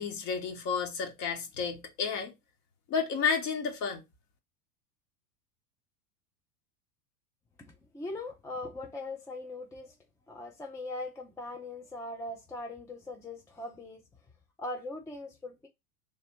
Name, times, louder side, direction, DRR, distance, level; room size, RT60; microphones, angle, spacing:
voice 1, 0.0-2.3 2.9-4.0, left 6 dB, 40° left, 1.4 m, -31 dB
voice 2, 7.9-9.9 10.3-14.0 14.6-15.7, left 2 dB, 5° left, 0.5 m, -40 dB
3.4 x 3.0 x 4.3 m
hypercardioid pair, 90°, 44 cm